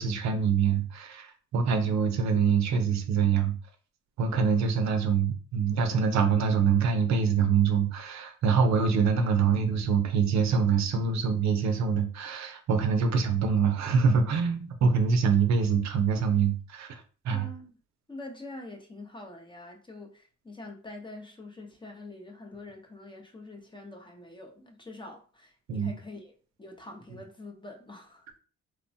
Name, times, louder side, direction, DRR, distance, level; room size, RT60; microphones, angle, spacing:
voice 1, 0.0-3.5 4.2-17.4 25.7-26.0, right 6 dB, 65° right, 0.6 m, -25 dB
voice 2, 17.3-17.7 18.1-28.4, left 2 dB, 15° left, 0.6 m, -45 dB
3.0 x 2.1 x 2.7 m
cardioid pair, 90°, 30 cm